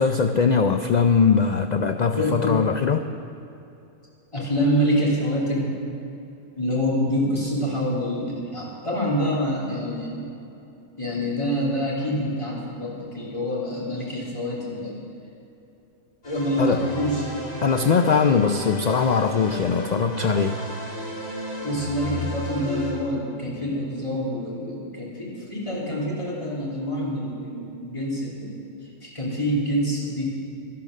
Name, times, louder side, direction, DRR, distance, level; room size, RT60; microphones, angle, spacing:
voice 1, 0.0-3.1 16.6-16.8 17.6-20.6, left 5 dB, 70° left, 8 dB, 0.4 m, -21 dB
voice 2, 2.1-2.7 4.3-5.7 6.6-10.3 11.0-15.0 16.2-17.3 21.6-28.6 29.0-30.3, equal, 25° left, -5 dB, 2.8 m, -26 dB
sound 1, 16.2-22.9, equal, 55° left, 3.3 m, -33 dB
12.0 x 11.5 x 6.4 m, 2.7 s
omnidirectional pair, 1.3 m